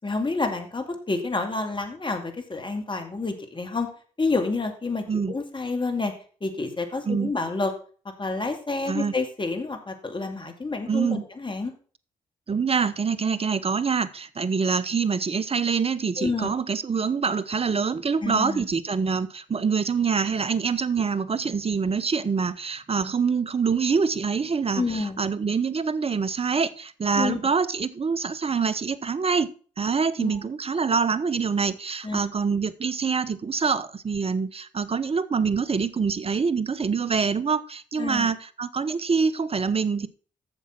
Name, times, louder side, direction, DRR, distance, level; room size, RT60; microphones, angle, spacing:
voice 1, 0.0-3.9 4.2-6.1 6.4-7.7 8.2-11.7 16.2-16.5 18.2-18.6 24.7-25.2 27.2-27.4 30.2-30.4 32.0-32.2 38.0-38.3, left 3 dB, 25° left, 2.4 m, -28 dB
voice 2, 10.9-11.3 12.5-29.5 29.8-40.1, right 5 dB, 35° right, 0.9 m, -25 dB
8.0 x 7.1 x 5.9 m
hypercardioid pair, 40°, 18 cm